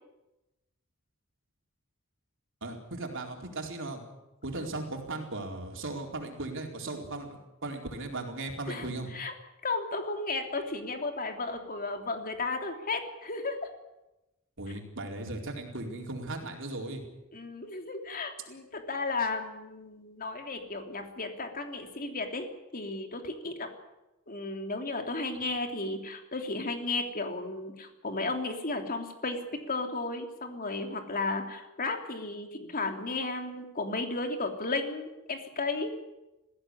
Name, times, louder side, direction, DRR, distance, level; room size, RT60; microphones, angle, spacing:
voice 1, 2.6-4.0 4.4-9.1 14.6-17.0, right 2 dB, 60° right, 2 dB, 4.3 m, -37 dB
voice 2, 9.6-13.6 17.3-22.5 22.7-23.7 24.3-29.4 29.7-35.9, left 3 dB, 40° left, 5 dB, 3.2 m, -34 dB
20.5 x 16.0 x 10.0 m, 0.99 s
head